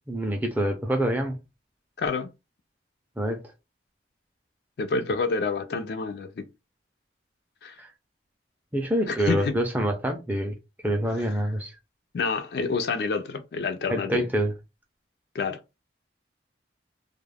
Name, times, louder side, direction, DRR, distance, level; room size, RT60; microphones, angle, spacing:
voice 1, 0.1-1.4 3.2-3.4 7.8-7.9 8.7-10.5 10.8-11.7 13.9-14.5, right 1 dB, 10° right, 0.5 m, -26 dB
voice 2, 2.0-2.3 4.8-6.5 7.6-7.8 9.1-9.6 11.2-11.3 12.1-14.3 15.3-15.6, left 4 dB, 55° left, 0.3 m, -28 dB
2.3 x 2.1 x 3.3 m
head